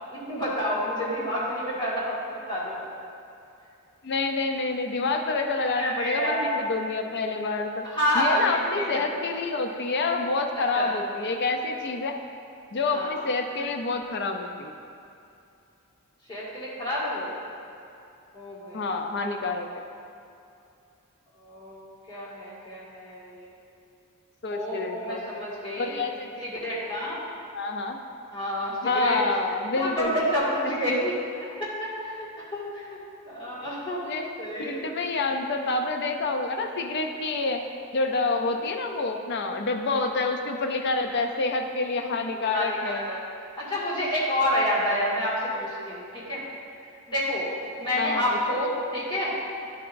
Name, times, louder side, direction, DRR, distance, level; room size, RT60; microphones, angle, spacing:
voice 1, 0.1-2.8 5.7-6.6 7.9-9.0 10.7-10.9 12.9-13.2 16.3-17.3 18.3-18.9 21.4-23.5 24.5-26.1 26.4-27.2 28.3-29.2 29.8-31.1 31.6-33.0 33.3-34.8 39.9-40.0 42.3-43.2 43.6-46.4 47.1-47.5 47.8-49.3, equal, 20° left, -9 dB, 1.9 m, -29 dB
voice 2, 4.0-7.9 8.1-12.2 12.7-14.7 18.7-19.7 24.4-25.2 25.8-26.4 27.5-28.0 28.8-30.2 30.6-31.0 34.0-34.3 34.6-37.6 37.9-43.0 48.0-48.6, left 3 dB, 50° left, 4 dB, 0.5 m, -28 dB
10.5 x 6.8 x 2.6 m, 2.7 s
head